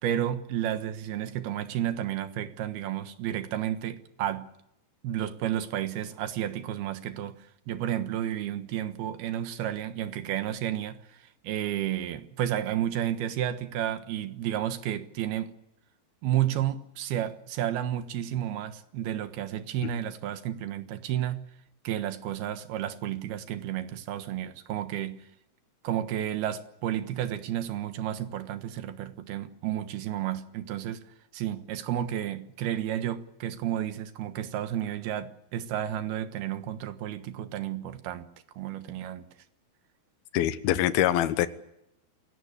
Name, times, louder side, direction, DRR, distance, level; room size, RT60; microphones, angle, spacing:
voice 1, 0.0-4.5 5.0-15.5 16.2-21.4 21.8-25.2 25.8-31.0 31.3-38.3 38.6-39.3, right 11 dB, 80° right, 3.3 m, -32 dB
voice 2, 40.3-41.5, left 12 dB, 80° left, 2.9 m, -24 dB
28.5 x 17.5 x 8.5 m
omnidirectional pair, 4.4 m